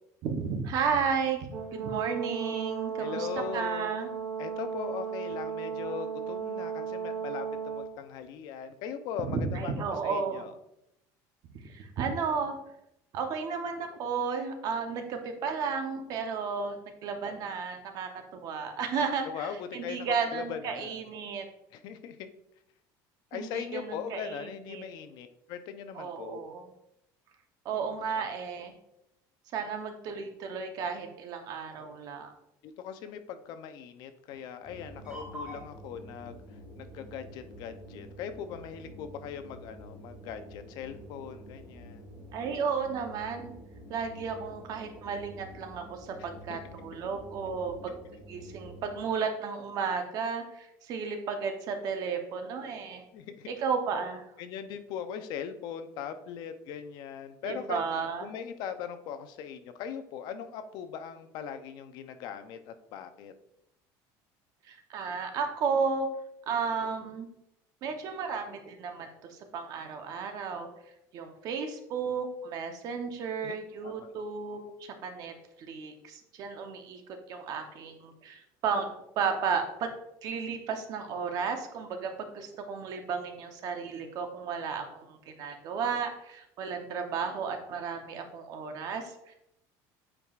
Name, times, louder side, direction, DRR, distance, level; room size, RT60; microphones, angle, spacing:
voice 1, 0.2-3.3 3.5-4.1 9.2-10.4 11.6-12.5 13.1-21.4 23.3-24.8 25.9-26.7 27.6-28.7 29.5-32.3 42.3-43.5 43.9-47.9 48.3-53.0 53.5-54.2 57.4-58.3 64.7-66.1 66.5-67.3 67.8-70.7 71.1-75.3 75.7-77.0 77.3-78.9 79.2-79.9 80.2-89.3, right 5 dB, 45° right, 6 dB, 0.8 m, -33 dB
Brass instrument, 1.5-7.9, right 7 dB, 85° right, 2.1 m, -35 dB
voice 2, 3.0-3.9 4.4-10.5 19.2-21.0 21.7-22.3 23.3-26.4 32.6-36.4 36.8-42.0 46.2-46.6 47.9-48.0 53.1-53.5 54.4-57.8 58.2-63.3 73.4-73.6 73.8-74.2, left 8 dB, 55° left, 9 dB, 0.6 m, -40 dB
sound 1, 34.6-49.0, equal, 10° right, 2.0 m, -48 dB
8.6 x 4.6 x 2.4 m, 0.82 s
cardioid pair, 165°, 9 cm